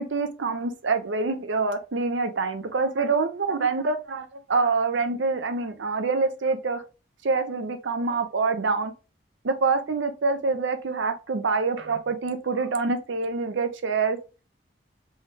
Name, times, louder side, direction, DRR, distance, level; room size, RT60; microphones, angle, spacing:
voice 1, 0.0-6.8 7.2-8.9 9.4-14.2, right 4 dB, 75° right, 0.6 m, -26 dB
3.5 x 2.7 x 3.1 m
head